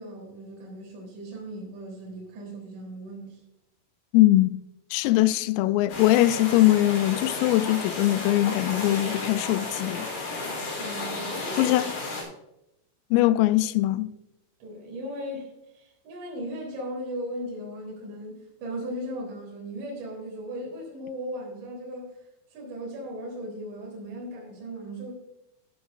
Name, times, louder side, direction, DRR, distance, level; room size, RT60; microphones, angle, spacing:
voice 1, 0.0-3.4 10.8-11.8 14.6-22.1 22.5-25.1, equal, 65° right, 5.7 m, -37 dB
voice 2, 4.1-4.6 4.9-10.1 11.6-11.9 13.1-14.1, left 16 dB, 85° left, 3.2 m, -21 dB
sound 1, 5.9-12.2, left 3 dB, 55° left, 5.1 m, -33 dB
13.0 x 12.5 x 2.6 m
omnidirectional pair, 5.8 m